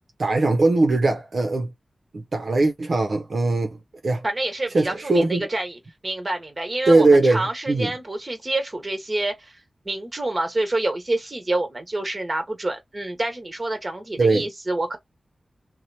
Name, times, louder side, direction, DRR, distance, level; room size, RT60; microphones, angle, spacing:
voice 1, 0.2-1.7 2.1-3.8 4.0-4.2 4.7-5.4 6.9-7.4 7.7-7.9 14.2-14.5, right 2 dB, 70° right, 0.6 m, -20 dB
voice 2, 4.2-9.5 9.8-15.0, right 2 dB, 35° right, 1.3 m, -27 dB
2.8 x 2.0 x 2.7 m
cardioid pair, 45°, 0 cm